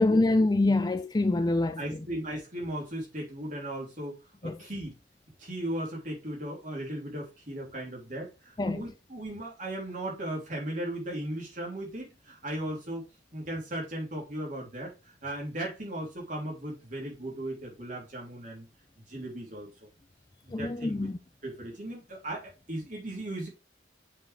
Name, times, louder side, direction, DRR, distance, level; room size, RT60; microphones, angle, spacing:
voice 1, 0.0-1.8 4.4-4.6 8.6-8.8 20.5-21.2, left 2 dB, 20° left, 0.4 m, -25 dB
voice 2, 1.8-4.1 4.4-5.0 5.4-13.1 13.3-14.9 15.2-18.6 19.1-19.7 20.4-21.1 21.4-23.5, right 1 dB, 45° right, 3.1 m, -37 dB
7.3 x 5.2 x 3.4 m
head